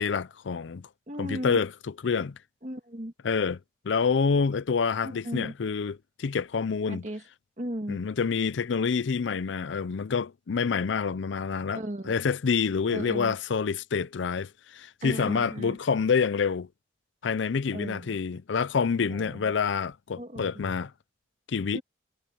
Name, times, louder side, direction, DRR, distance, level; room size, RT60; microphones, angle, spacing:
voice 1, 0.0-0.9 1.2-2.3 3.2-3.6 3.8-7.1 7.9-16.7 17.2-20.9 21.5-21.8, left 5 dB, 80° left, 0.5 m, -27 dB
voice 2, 1.1-1.6 2.6-3.1 5.0-5.5 6.9-7.2 7.6-8.0 11.7-12.1 12.9-13.4 15.0-15.8 17.7-18.1 19.1-19.5 20.2-20.7 21.7-21.8, right 1 dB, 40° right, 1.9 m, -36 dB
head